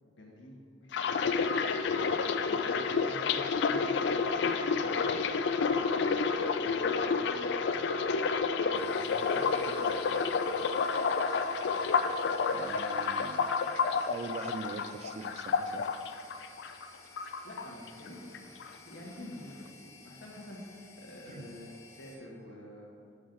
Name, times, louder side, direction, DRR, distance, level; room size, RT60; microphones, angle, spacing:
voice 1, 0.0-1.6 1.9-2.2 2.5-5.3 5.6-6.1 6.6-7.9 8.6-10.1 17.4-23.0, left 1 dB, 85° left, -2 dB, 1.4 m, -48 dB
sound 1, 0.9-16.9 17.2-18.1 18.3-18.7, left 5 dB, 65° left, 0.3 m, -30 dB
sound 2, 7.7-13.7, left 2 dB, 60° right, 1.8 m, -52 dB
sound 3, 8.7-22.2, left 3 dB, 20° left, 1.0 m, -55 dB
voice 2, 12.5-13.5 14.1-15.8 21.3-21.5, right 4 dB, 40° right, 10 dB, 0.3 m, -42 dB
7.4 x 6.2 x 3.9 m, 2.2 s
head